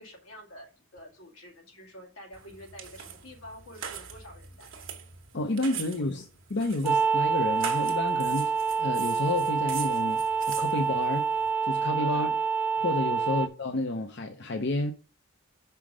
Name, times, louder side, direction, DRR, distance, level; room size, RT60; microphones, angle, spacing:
voice 1, 0.0-4.9 5.5-6.1 11.9-12.3 13.2-13.4, equal, 85° left, 2.2 m, -48 dB
sound 1, 2.3-11.5, right 8 dB, 70° right, 1.2 m, -42 dB
voice 2, 5.3-6.3 6.5-10.2 10.5-11.3 11.6-12.3 12.8-14.9, left 2 dB, 55° left, 0.6 m, -30 dB
sound 2, 6.8-13.5, right 5 dB, 10° right, 0.4 m, -27 dB
5.6 x 4.9 x 6.2 m
head